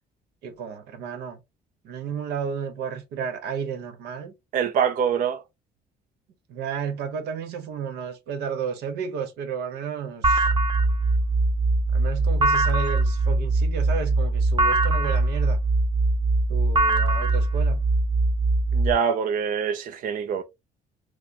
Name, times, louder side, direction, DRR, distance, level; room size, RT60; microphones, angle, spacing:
voice 1, 0.4-1.4 1.8-4.3 6.5-10.5 11.9-15.6 16.5-17.8, right 7 dB, 85° right, 1.0 m, -32 dB
voice 2, 4.5-5.4 18.7-20.4, right 7 dB, 55° right, 0.5 m, -24 dB
sound 1, 10.2-18.9, right 2 dB, 30° right, 0.8 m, -21 dB
4.8 x 2.1 x 2.8 m
cardioid pair, 110°, 17 cm